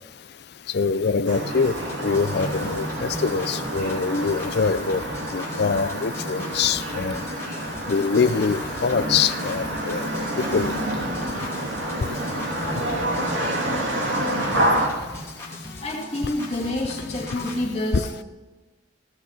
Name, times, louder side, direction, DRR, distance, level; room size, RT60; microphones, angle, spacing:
voice 1, 0.7-5.0 5.3-7.2 7.9-10.1 10.5-10.7 17.9-18.0, left 5 dB, 55° left, 14 dB, 0.5 m, -24 dB
sound 1, 1.3-14.9, right 1 dB, 75° right, 2.4 m, -28 dB
sound 2, 1.6-17.6, left 1 dB, 15° left, 2.9 m, -39 dB
voice 2, 15.8-18.2, left 1 dB, 30° left, -2 dB, 2.5 m, -28 dB
16.5 x 6.0 x 5.7 m, 1.3 s
head